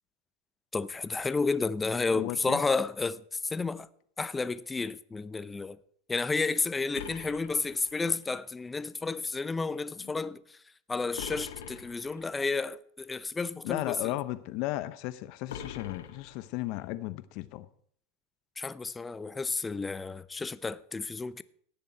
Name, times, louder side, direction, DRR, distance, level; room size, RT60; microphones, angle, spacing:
voice 1, 0.7-3.9 4.2-5.8 6.1-10.4 10.9-14.1 18.6-21.4, left 4 dB, 15° left, 0.6 m, -31 dB
voice 2, 2.1-2.6 10.0-10.1 11.3-11.4 13.6-17.7, left 16 dB, 55° left, 0.8 m, -35 dB
sound 1, 6.9-8.3 11.2-12.3 15.5-16.8, left 8 dB, 85° left, 1.4 m, -43 dB
18.0 x 6.9 x 4.5 m
hypercardioid pair, 110°, 0 cm